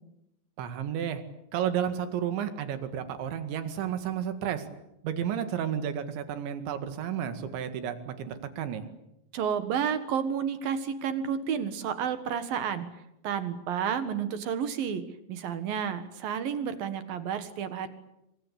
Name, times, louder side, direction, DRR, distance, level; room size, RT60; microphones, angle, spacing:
voice 1, 0.6-1.2 1.5-4.6 5.0-8.9, right 9 dB, 85° right, 9 dB, 4.4 m, -32 dB
voice 2, 9.3-12.9 13.2-17.9, right 7 dB, 60° right, 11 dB, 3.0 m, -31 dB
27.5 x 24.0 x 8.4 m, 0.84 s
omnidirectional pair, 5.1 m